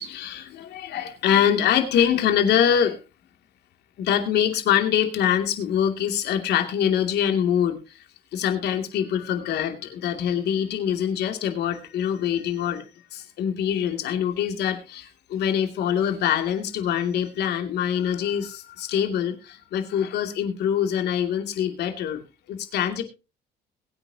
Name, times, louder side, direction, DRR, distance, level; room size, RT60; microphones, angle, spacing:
voice 1, 0.0-3.0 4.0-7.8 8.3-12.8 13.1-22.2 22.5-23.0, left 9 dB, 65° left, 6 dB, 2.6 m, -24 dB
22.0 x 8.8 x 2.8 m, 0.30 s
cardioid pair, 135°, 18 cm